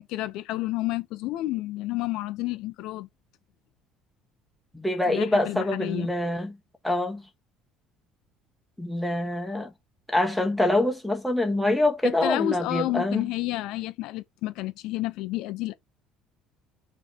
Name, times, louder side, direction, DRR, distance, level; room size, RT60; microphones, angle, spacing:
voice 1, 0.0-3.1 5.1-6.1 12.0-15.7, left 16 dB, 60° left, 0.8 m, -30 dB
voice 2, 4.7-6.6 6.8-7.2 8.8-9.7 10.1-13.3, left 1 dB, ahead, 1.3 m, -25 dB
5.9 x 3.4 x 5.2 m
cardioid pair, 175°, 0 cm